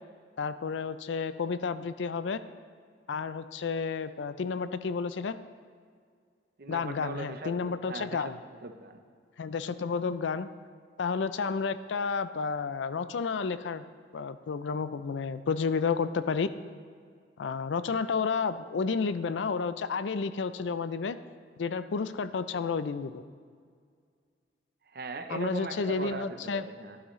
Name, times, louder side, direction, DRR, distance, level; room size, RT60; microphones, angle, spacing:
voice 1, 0.4-2.4 3.1-5.4 6.7-8.4 9.4-10.5 11.0-13.8 14.1-16.5 17.4-21.2 21.6-23.2 25.3-26.7, left 5 dB, 85° left, 13 dB, 0.4 m, -31 dB
voice 2, 6.6-8.3 8.6-9.0 24.9-27.0, right 3 dB, 55° right, 7 dB, 0.7 m, -39 dB
12.5 x 11.5 x 3.1 m, 2.1 s
head